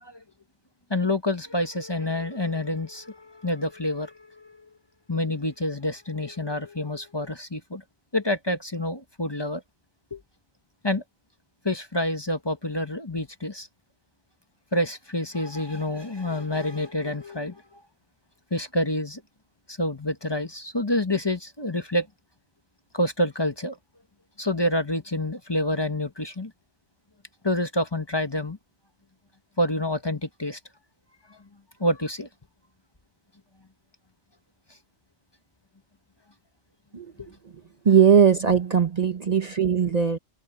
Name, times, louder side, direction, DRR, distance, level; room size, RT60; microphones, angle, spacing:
voice 1, 0.9-4.6 5.1-7.8 8.1-9.6 10.1-10.2 10.8-11.0 11.6-13.7 14.7-17.8 18.5-19.2 19.7-22.1 22.9-23.8 24.4-26.5 27.4-28.6 29.6-30.6 31.3-31.4 31.8-32.3 37.2-37.3, left 1 dB, 25° left, 1.2 m, -28 dB
voice 2, 37.8-40.2, right 7 dB, 40° right, 0.9 m, -19 dB
omnidirectional pair, 1.1 m